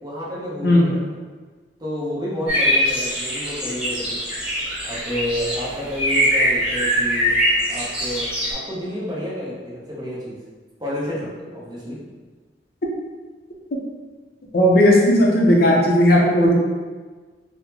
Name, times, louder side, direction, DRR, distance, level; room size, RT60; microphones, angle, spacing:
voice 1, 0.0-1.2 1.8-4.2 4.8-7.3 7.7-10.4 10.8-12.0, equal, 25° right, -7 dB, 0.8 m, -30 dB
sound 1, 2.5-8.5, equal, 5° right, 1.1 m, -22 dB
voice 2, 14.5-16.5, left 1 dB, 60° left, -1 dB, 0.5 m, -15 dB
3.8 x 2.0 x 2.8 m, 1.4 s
head